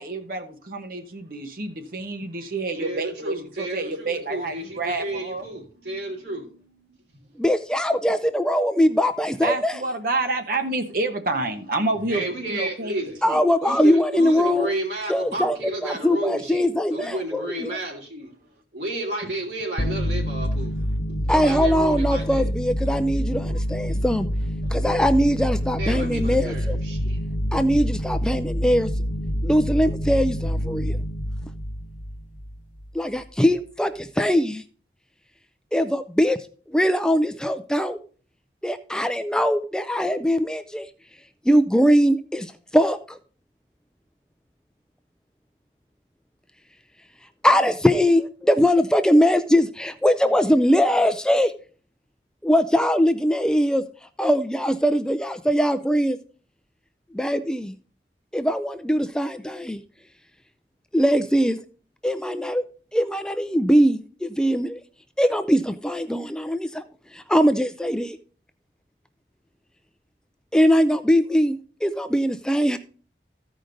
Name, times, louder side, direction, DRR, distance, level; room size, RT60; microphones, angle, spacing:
voice 1, 0.0-5.5 9.4-12.9 13.3-13.4 23.5-23.6, right 2 dB, 50° right, 1.0 m, -28 dB
voice 2, 2.8-6.8 12.1-13.2 13.6-18.3 18.7-20.7 21.1-22.5 25.8-27.2, right 1 dB, 75° right, 3.3 m, -32 dB
voice 3, 7.4-9.8 13.2-14.7 15.1-15.6 15.8-17.7 21.3-24.3 24.7-26.8 27.5-28.9 29.4-31.0 32.9-34.6 35.7-36.4 36.7-38.0 38.6-40.9 41.5-43.2 47.4-51.5 52.4-53.8 54.2-56.2 57.1-57.7 58.3-59.8 60.9-61.6 62.0-62.6 62.9-64.8 65.2-66.8 67.1-68.2 70.5-72.8, equal, 5° left, 0.4 m, -21 dB
sound 1, 19.8-32.9, equal, 45° left, 0.8 m, -27 dB
14.5 x 5.1 x 3.9 m
head